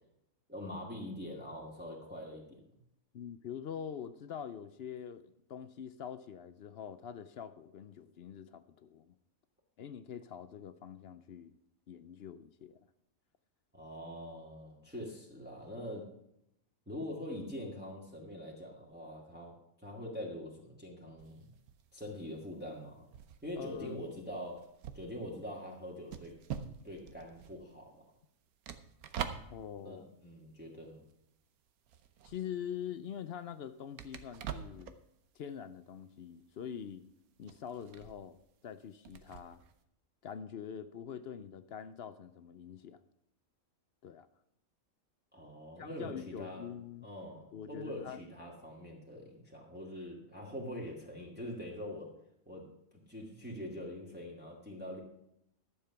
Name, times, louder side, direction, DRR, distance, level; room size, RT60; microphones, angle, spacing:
voice 1, 0.5-2.6 13.7-16.1 16.9-21.5 21.9-23.1 23.4-24.7 24.9-26.4 26.8-28.0 29.8-31.0 45.3-46.7 47.0-52.1 52.5-55.0, left 1 dB, 5° right, 1.9 m, -44 dB
voice 2, 3.1-9.1 9.8-11.6 11.9-12.8 23.6-24.0 29.5-30.0 32.2-35.0 35.3-37.1 37.4-38.4 38.6-39.6 40.2-43.0 44.0-44.3 45.8-47.1 47.5-48.2, left 8 dB, 60° left, 0.7 m, -44 dB
sound 1, 21.2-31.4 31.7-39.8, right 8 dB, 90° right, 1.3 m, -46 dB
12.0 x 7.4 x 5.7 m
omnidirectional pair, 1.5 m